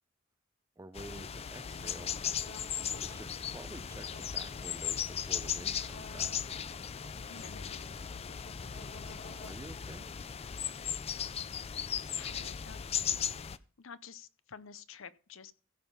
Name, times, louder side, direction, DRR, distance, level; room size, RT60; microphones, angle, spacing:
voice 1, 0.8-2.1 3.0-6.3 9.5-10.1, right 2 dB, 15° right, 0.6 m, -49 dB
sound 1, 1.0-13.6, left 8 dB, 30° left, 0.4 m, -37 dB
sound 2, 1.1-9.5, left 2 dB, 85° left, 5.7 m, -53 dB
voice 2, 7.2-7.8 11.6-12.8 13.8-15.5, left 6 dB, 70° left, 0.7 m, -50 dB
15.5 x 5.5 x 5.5 m
head